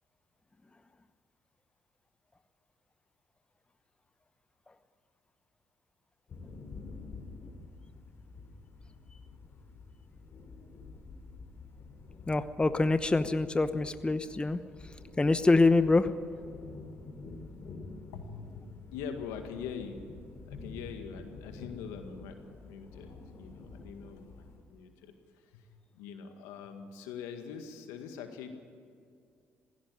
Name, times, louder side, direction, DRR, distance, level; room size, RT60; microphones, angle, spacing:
sound 1, 6.3-24.6, left 3 dB, 55° left, 3.5 m, -48 dB
voice 1, 12.3-14.6 15.2-16.1, left 3 dB, 20° left, 12 dB, 0.9 m, -25 dB
voice 2, 18.1-20.0 20.4-22.4 22.6-25.1 25.5-25.7 25.9-28.6, left 7 dB, 85° left, 6 dB, 1.9 m, -43 dB
17.0 x 16.0 x 9.8 m, 2.2 s
hypercardioid pair, 60°, 5 cm